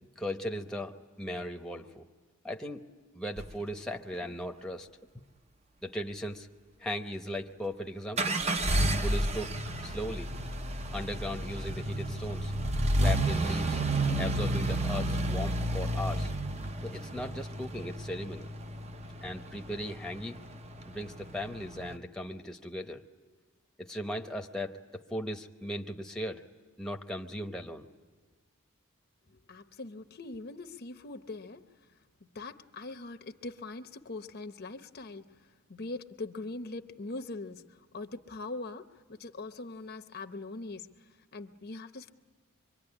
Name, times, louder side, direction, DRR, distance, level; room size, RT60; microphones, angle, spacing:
voice 1, 0.2-2.1 2.4-2.8 3.1-4.9 5.8-6.5 6.8-8.4 9.0-10.3 10.9-12.5 13.0-13.8 14.2-16.3 16.8-18.5 19.2-20.4 20.8-23.0 23.8-26.4 26.8-27.9, equal, 5° left, 3 dB, 0.9 m, -37 dB
sound 1, 3.4-3.5 8.2-22.0, right 1 dB, 30° right, 0.7 m, -31 dB
voice 2, 29.3-31.6 32.2-42.1, left 2 dB, 45° left, 8 dB, 0.8 m, -42 dB
25.5 x 24.0 x 9.8 m, 1.5 s
head